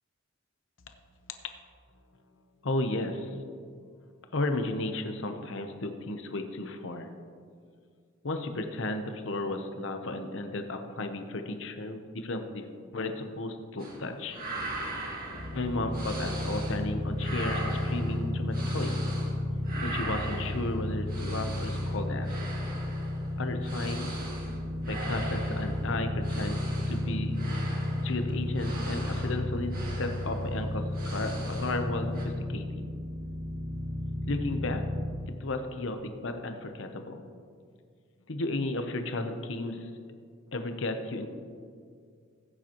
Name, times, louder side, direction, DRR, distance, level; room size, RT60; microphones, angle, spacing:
voice 1, 2.6-3.3 4.3-7.1 8.2-12.6 12.9-14.4 15.5-19.0 19.8-22.4 23.4-24.1 24.9-27.3 28.0-32.9 34.3-34.8 35.3-37.2 38.3-39.9 40.5-41.3, left 2 dB, 65° left, 6 dB, 0.9 m, -34 dB
sound 1, 13.8-14.0 14.3-16.9 17.1-19.4 19.6-31.9 32.1-32.2, right 1 dB, 45° right, 2.0 m, -40 dB
sound 2, 15.3-35.0, left 1 dB, 85° left, 2.6 m, -33 dB
16.0 x 8.8 x 3.0 m, 2.1 s
head